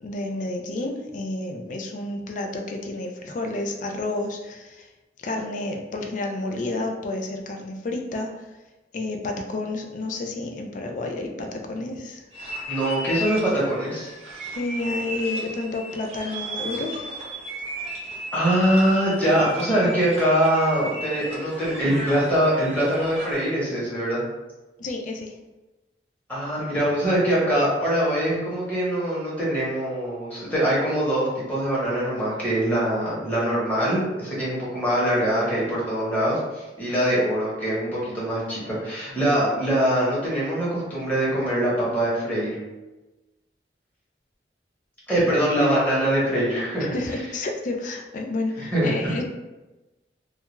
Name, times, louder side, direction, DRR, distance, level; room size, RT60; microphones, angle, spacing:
voice 1, 0.0-4.9 5.2-8.5 8.9-12.2 14.5-17.1 24.8-25.3 46.8-49.2, left 2 dB, 45° left, 3 dB, 0.3 m, -30 dB
sound 1, 12.3-23.5, equal, 40° right, 0.6 m, -35 dB
voice 2, 12.7-14.4 18.3-24.2 26.3-42.6 45.1-46.9 48.6-49.2, right 1 dB, 10° left, -8 dB, 0.9 m, -23 dB
2.3 x 2.2 x 3.0 m, 1.1 s
head